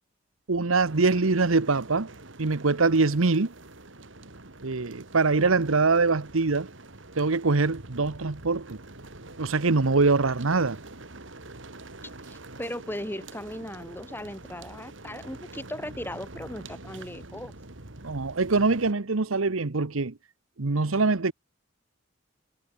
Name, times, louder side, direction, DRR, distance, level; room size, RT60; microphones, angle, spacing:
voice 1, 0.5-2.1 2.4-3.5 4.6-6.7 7.2-8.8 9.4-10.8 18.0-20.1 20.6-21.3, right 3 dB, 85° right, 1.0 m, -23 dB
sound 1, 0.8-18.9, right 2 dB, 65° right, 2.4 m, -45 dB
voice 2, 12.3-17.5, left 1 dB, 10° left, 3.4 m, -37 dB
head